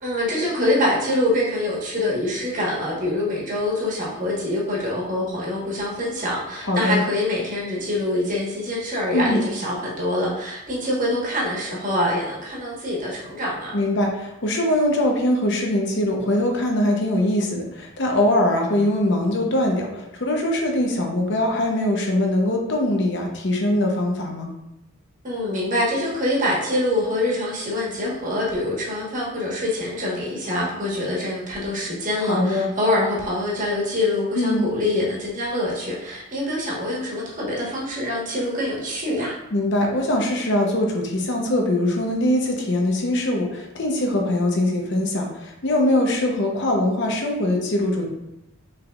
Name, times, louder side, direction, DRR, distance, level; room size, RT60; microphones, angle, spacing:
voice 1, 0.0-13.7 25.2-39.3, left 1 dB, 35° right, -5 dB, 1.3 m, -25 dB
voice 2, 6.6-7.0 9.1-9.5 13.7-24.5 32.2-32.7 34.3-34.7 39.5-48.1, left 1 dB, 55° left, 1 dB, 0.8 m, -22 dB
5.5 x 3.5 x 2.4 m, 0.92 s
head